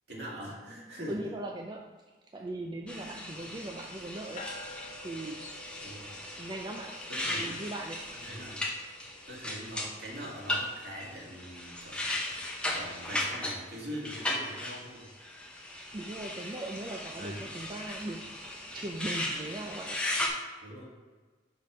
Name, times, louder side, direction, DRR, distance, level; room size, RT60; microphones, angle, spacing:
voice 1, 0.1-1.3 2.9-3.4 5.8-6.1 7.1-7.5 8.1-8.6 9.3-12.3 12.7-15.1 17.2-17.5 20.6-20.8, right 1 dB, 65° right, -4 dB, 2.2 m, -43 dB
voice 2, 1.1-1.9 2.3-4.5 5.0-5.5 6.4-7.0 7.3-8.0 15.9-18.4 18.7-20.0, right 2 dB, 25° right, 1 dB, 0.4 m, -39 dB
sound 1, 2.9-20.3, left 1 dB, 5° left, 0.9 m, -37 dB
sound 2, 4.4-15.9, left 1 dB, 45° left, 0.7 m, -54 dB
5.8 x 5.4 x 5.1 m, 1.3 s
head